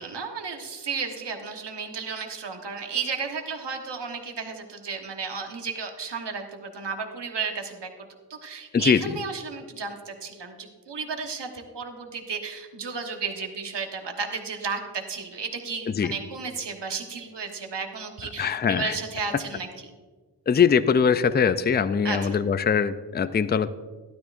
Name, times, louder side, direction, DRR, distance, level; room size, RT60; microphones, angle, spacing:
voice 1, 0.0-7.9 8.3-19.9 22.0-22.4, right 5 dB, 75° right, 4 dB, 1.2 m, -33 dB
voice 2, 18.4-18.9 20.5-23.7, left 6 dB, 25° left, 13 dB, 0.3 m, -22 dB
12.5 x 12.0 x 2.5 m, 1.4 s
wide cardioid pair, 85°, 42 cm